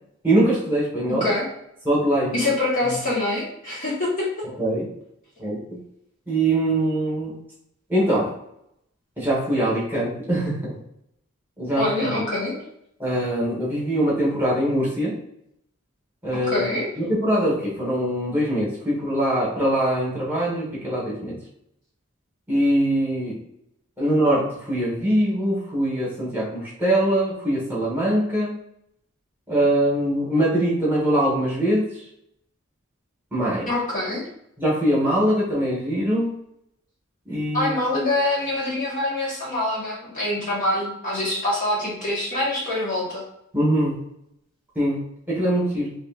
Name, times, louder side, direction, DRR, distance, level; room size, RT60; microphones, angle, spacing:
voice 1, 0.2-1.3 1.8-2.4 4.4-4.9 5.4-5.8 6.3-7.4 7.9-8.3 9.2-10.7 11.6-12.2 13.0-15.1 16.2-16.7 17.0-21.4 22.5-23.4 24.0-28.5 29.5-32.0 33.3-33.7 34.6-36.3 37.2-37.7 43.5-43.9 44.7-45.0 45.3-45.9, right 1 dB, 10° right, -6 dB, 1.4 m, -22 dB
voice 2, 2.3-4.4 11.8-12.5 16.5-16.9 33.7-34.2 37.5-43.2, left 2 dB, 40° left, -6 dB, 1.3 m, -25 dB
4.2 x 2.7 x 2.5 m, 0.76 s
head